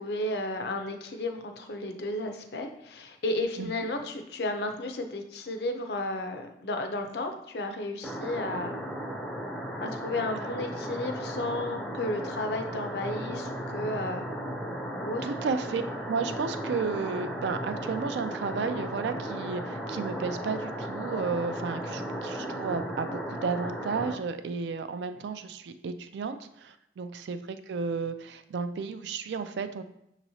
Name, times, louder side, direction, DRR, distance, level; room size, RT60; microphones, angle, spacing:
voice 1, 0.0-8.8 9.8-14.3 15.0-15.2, left 2 dB, 65° left, 6 dB, 0.5 m, -33 dB
sound 1, 8.0-24.2, equal, 5° left, 0.4 m, -35 dB
voice 2, 15.2-29.8, right 5 dB, 75° right, 11 dB, 0.3 m, -33 dB
6.2 x 3.0 x 2.7 m, 0.79 s
head